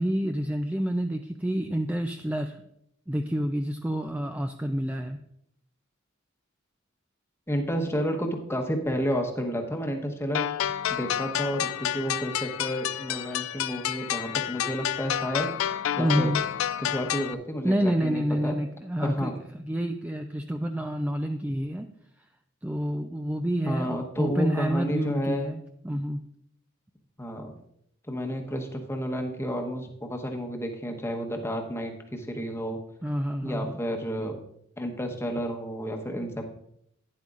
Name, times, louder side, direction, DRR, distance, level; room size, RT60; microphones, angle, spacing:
voice 1, 0.0-2.6 3.1-5.2 16.0-16.4 17.6-19.3 19.6-21.9 22.6-26.2 33.0-33.8 36.1-36.2, equal, 10° right, 5 dB, 0.4 m, -28 dB
voice 2, 7.5-10.4 10.9-15.5 16.0-16.3 16.8-18.6 19.0-19.3 23.6-25.5 27.2-27.5 28.1-32.8 33.4-34.4 34.8-36.5, equal, 10° left, 3 dB, 1.0 m, -31 dB
sound 1, 10.3-17.3, left 10 dB, 80° left, 0.3 m, -30 dB
11.5 x 9.9 x 2.5 m, 0.73 s
head